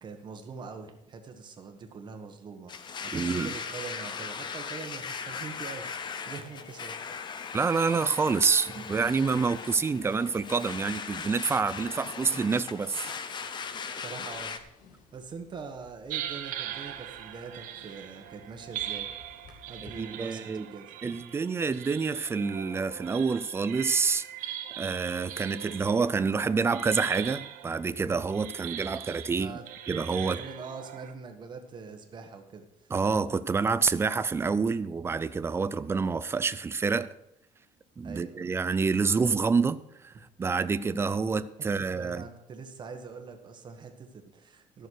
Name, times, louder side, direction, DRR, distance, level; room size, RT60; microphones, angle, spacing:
voice 1, 0.0-2.7 3.0-6.0 6.2-7.3 13.9-14.5 15.1-19.1 19.7-21.2 29.2-29.6 30.3-32.9 38.0-38.4 41.8-44.9, right 5 dB, 35° right, 1.5 m, -43 dB
Domestic sounds home sounds, 2.7-14.6, left 6 dB, 35° left, 0.8 m, -38 dB
voice 2, 3.1-3.5 7.5-13.1 19.8-20.7 21.0-24.2 24.8-29.5 29.9-30.4 32.9-37.1 38.0-40.1 40.4-42.2, right 5 dB, 20° right, 0.4 m, -27 dB
sound 1, 14.3-20.0, left 4 dB, 90° left, 2.5 m, -56 dB
sound 2, 16.1-31.1, right 11 dB, 85° right, 1.0 m, -41 dB
13.5 x 6.7 x 6.4 m
cardioid pair, 160°, 14 cm